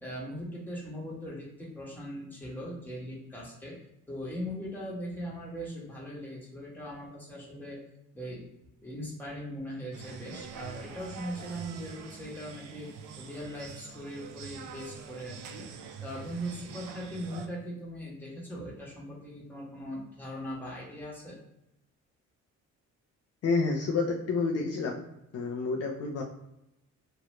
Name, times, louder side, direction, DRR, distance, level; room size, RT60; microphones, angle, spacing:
voice 1, 0.0-3.8 4.1-7.8 8.1-8.5 8.8-12.9 13.2-15.7 16.0-21.4, equal, 5° left, -5 dB, 1.3 m, -40 dB
sound 1, 9.9-17.5, right 6 dB, 85° right, 0.5 m, -45 dB
voice 2, 23.4-25.1 25.3-26.2, left 4 dB, 55° left, 0 dB, 0.5 m, -29 dB
3.0 x 2.5 x 3.1 m, 0.85 s
cardioid pair, 90°, 30 cm